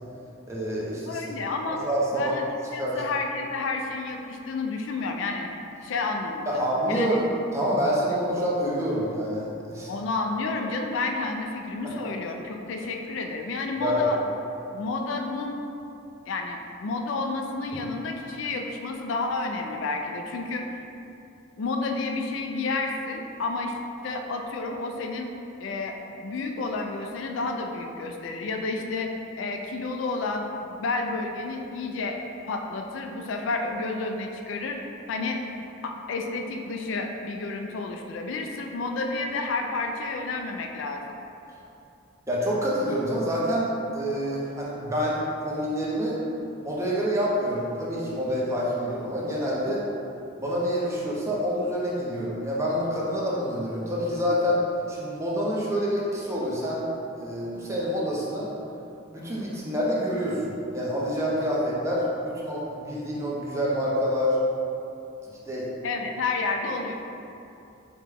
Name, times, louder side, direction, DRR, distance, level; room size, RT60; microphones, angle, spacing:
voice 1, 0.5-1.2 1.7-2.3 2.8-3.0 6.4-7.2 7.5-9.9 11.8-11.9 13.8-14.0 42.3-43.7 43.9-46.2 46.6-49.8 50.4-54.6 54.9-56.9 57.2-58.5 59.1-64.4 65.5-65.7, equal, 15° right, -6 dB, 0.6 m, -27 dB
voice 2, 1.1-1.8 2.1-2.4 2.7-5.5 5.8-6.6 6.9-7.2 9.9-14.2 14.7-15.6 16.3-20.6 21.6-23.7 24.0-25.3 25.6-29.1 29.4-32.2 32.5-34.8 35.1-35.4 35.8-41.2 65.8-66.9, left 3 dB, 65° left, 3 dB, 0.3 m, -30 dB
4.9 x 2.2 x 3.4 m, 2.8 s
head